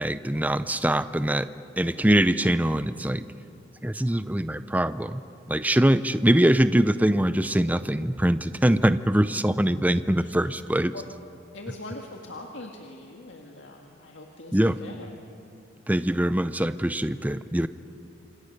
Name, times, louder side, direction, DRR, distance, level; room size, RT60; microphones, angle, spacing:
voice 1, 0.0-1.5 1.8-3.2 3.8-5.2 5.5-10.9 14.5-14.8 15.9-17.7, right 1 dB, 10° right, 13 dB, 0.5 m, -23 dB
voice 2, 10.2-10.5 10.9-11.0 11.5-15.2, left 2 dB, 80° left, 1 dB, 1.9 m, -42 dB
27.5 x 26.5 x 6.8 m, 2.7 s
head